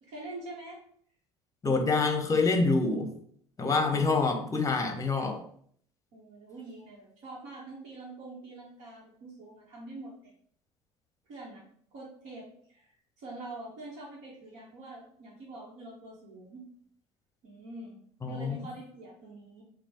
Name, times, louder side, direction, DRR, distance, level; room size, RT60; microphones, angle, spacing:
voice 1, 0.0-0.8 3.8-4.4 6.1-10.3 11.3-12.9 13.2-16.6 17.4-18.0 18.3-19.6, right 2 dB, 65° right, -5 dB, 0.9 m, -45 dB
voice 2, 1.6-3.1 3.6-5.4 18.2-18.6, left 3 dB, 25° left, 4 dB, 0.7 m, -26 dB
3.0 x 2.0 x 4.1 m, 0.62 s
hypercardioid pair, 70°, 14 cm